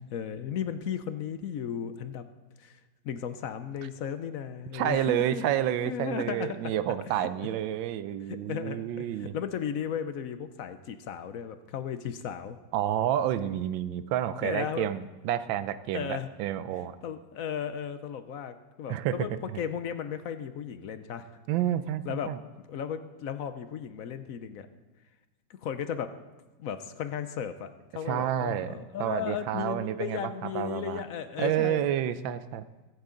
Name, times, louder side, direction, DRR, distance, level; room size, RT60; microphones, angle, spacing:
voice 1, 0.0-2.2 2.6-2.8 3.0-5.4 5.9-7.0 8.3-12.6 14.4-14.9 15.9-16.3 16.7-19.3 19.6-21.3 22.0-22.3 22.7-24.7 25.6-26.2 26.6-31.8, left 8 dB, 65° left, 10 dB, 0.9 m, -35 dB
voice 2, 4.7-9.4 12.7-17.0 18.9-19.2 19.5-19.6 21.5-22.4 28.1-28.7 29.0-31.0 31.4-32.6, right 11 dB, 85° right, 13 dB, 1.4 m, -29 dB
22.0 x 8.3 x 3.8 m, 1.2 s
omnidirectional pair, 2.0 m